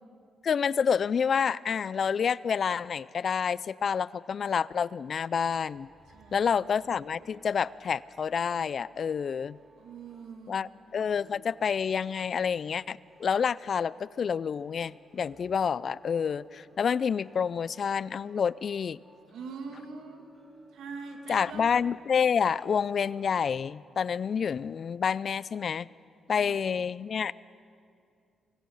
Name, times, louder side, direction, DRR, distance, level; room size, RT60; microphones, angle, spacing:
voice 1, 0.4-5.9 6.3-9.6 10.5-19.0 21.3-25.9 26.3-27.3, left 7 dB, 60° left, 21 dB, 0.4 m, -28 dB
sound 1, 5.6-23.6, right 1 dB, 25° right, 6.5 m, -60 dB
voice 2, 6.1-6.7 9.8-10.7 19.3-20.2 20.7-21.7 26.3-26.6, right 5 dB, 80° right, 4 dB, 2.4 m, -43 dB
25.0 x 20.0 x 5.6 m, 2.5 s
supercardioid pair, 60°, 0 cm